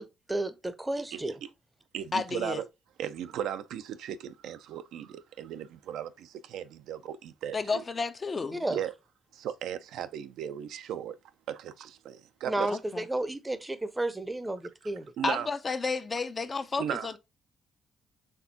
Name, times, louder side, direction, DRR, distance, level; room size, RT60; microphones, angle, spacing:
voice 1, 0.0-1.3 8.6-8.8 12.5-15.1, right 2 dB, 10° right, 0.6 m, -32 dB
voice 2, 1.1-1.5 1.9-2.7 3.0-7.8 8.7-8.9 9.3-11.2 11.5-12.8 15.2-15.5 16.8-17.1, right 10 dB, 85° right, 0.4 m, -36 dB
voice 3, 2.1-2.6 7.5-8.6 12.7-13.0 15.2-17.2, left 4 dB, 35° left, 0.5 m, -31 dB
4.3 x 3.4 x 2.7 m
cardioid pair, 90°, 0 cm